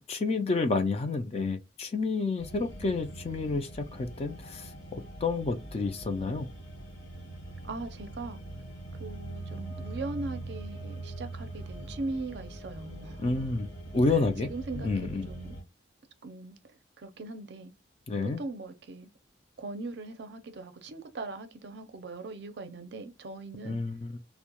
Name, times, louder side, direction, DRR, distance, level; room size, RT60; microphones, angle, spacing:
voice 1, 0.1-6.5 13.2-13.7 13.9-15.3 18.1-18.4 23.6-24.2, left 3 dB, 30° left, 0.3 m, -30 dB
sound 1, 2.4-15.6, right 2 dB, 60° left, 1.1 m, -42 dB
voice 2, 7.6-8.4 9.0-13.4 14.4-15.6 16.2-16.6 17.0-17.7 18.4-19.1 19.6-23.8, right 3 dB, 60° right, 0.5 m, -40 dB
2.2 x 2.0 x 2.9 m
head